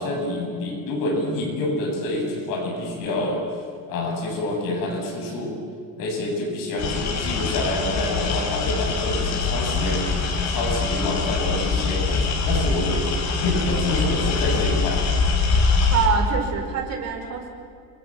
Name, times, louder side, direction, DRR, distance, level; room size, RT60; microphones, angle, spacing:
voice 1, 0.0-3.4 3.9-5.6 6.0-13.1 13.4-15.0, left 2 dB, 70° left, 1 dB, 7.8 m, -27 dB
sound 1, 6.8-16.1, left 4 dB, 50° left, 4.2 m, -23 dB
voice 2, 15.9-17.5, right 7 dB, 45° right, 2 dB, 5.0 m, -25 dB
28.5 x 24.0 x 7.7 m, 2.3 s
cardioid pair, 170°, 35 cm